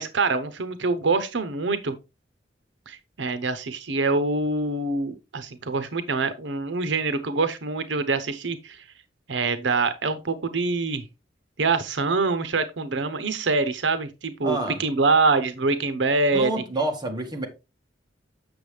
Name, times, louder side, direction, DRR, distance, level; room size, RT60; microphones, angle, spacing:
voice 1, 0.0-2.0 2.9-8.8 9.3-11.0 11.6-16.5, right 3 dB, 80° right, 0.8 m, -25 dB
voice 2, 14.4-14.8 16.3-17.5, right 2 dB, 25° right, 1.6 m, -28 dB
7.9 x 6.3 x 3.3 m
head